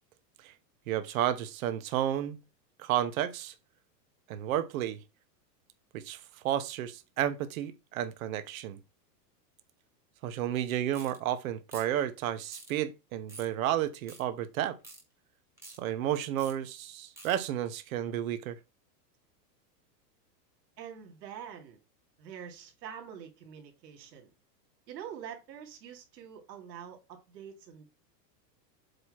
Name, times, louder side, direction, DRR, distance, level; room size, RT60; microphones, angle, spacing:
voice 1, 0.9-2.4 2.8-3.5 4.3-5.0 5.9-8.8 10.2-14.8 15.8-18.6, right 11 dB, 55° right, 1.1 m, -32 dB
sound 1, 10.9-11.2 11.7-12.0 12.5-12.7 13.3-13.5 14.1-14.2 14.8-15.0 15.6-15.8 16.4-16.5 17.2-17.4, right 2 dB, 5° right, 1.3 m, -48 dB
voice 2, 20.8-21.8 22.2-24.3 24.9-27.9, right 8 dB, 80° right, 2.8 m, -45 dB
8.0 x 3.0 x 5.8 m
supercardioid pair, 170°, 50 cm